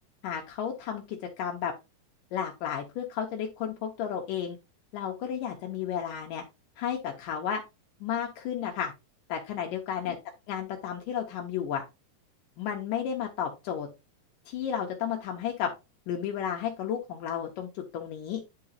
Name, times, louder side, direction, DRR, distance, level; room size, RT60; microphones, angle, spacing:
voice 1, 0.2-1.7 2.3-4.6 4.9-6.4 6.8-7.6 8.0-8.9 9.3-10.2 10.5-11.8 12.6-13.9 14.5-15.7 16.1-18.4, left 8 dB, 75° left, 2 dB, 2.4 m, -32 dB
9.8 x 4.9 x 2.7 m, 0.25 s
omnidirectional pair, 4.1 m